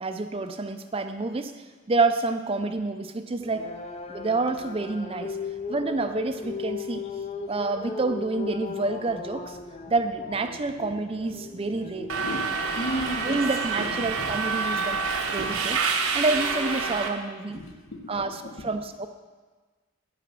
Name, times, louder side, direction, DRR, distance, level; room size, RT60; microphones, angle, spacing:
voice 1, 0.0-1.6 1.9-3.6 4.1-5.4 5.7-7.0 7.5-9.6 9.9-12.1 13.2-15.0 15.3-15.8 16.1-17.6 18.1-19.1, right 3 dB, 25° right, 9 dB, 0.4 m, -28 dB
sound 1, 3.3-12.5, left 4 dB, 30° left, 0.5 m, -37 dB
Subway metro underground, 12.1-17.1, right 4 dB, 85° right, 1.1 m, -27 dB
voice 2, 12.2-13.4 13.8-14.3 17.5-18.8, equal, 70° left, 4 dB, 1.2 m, -35 dB
9.5 x 8.2 x 6.0 m, 1.4 s
head